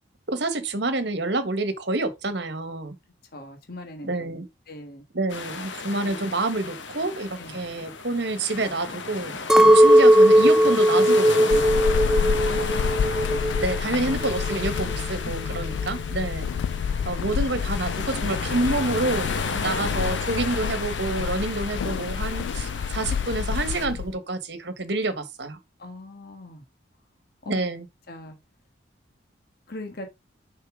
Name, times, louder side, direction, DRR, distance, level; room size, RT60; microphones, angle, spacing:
voice 1, 0.3-2.9 4.0-4.4 5.1-11.8 13.6-16.5 17.0-19.3 19.6-25.6 27.5-27.8, right 2 dB, 60° right, 1.4 m, -28 dB
voice 2, 3.3-5.0 6.0-6.2 7.4-7.5 9.5-9.8 12.1-13.1 15.2-15.9 19.5-19.8 25.8-26.6 27.4-27.6 28.1-28.4 29.7-30.1, left 1 dB, 50° left, 1.5 m, -41 dB
sound 1, 5.3-23.9, left 4 dB, 70° left, 1.3 m, -33 dB
Chink clink, 9.5-13.9 14.1-14.9, equal, 5° right, 0.5 m, -18 dB
Walk footsteps / Squeak, 11.5-24.2, left 7 dB, 85° left, 0.3 m, -29 dB
6.7 x 5.6 x 3.7 m
head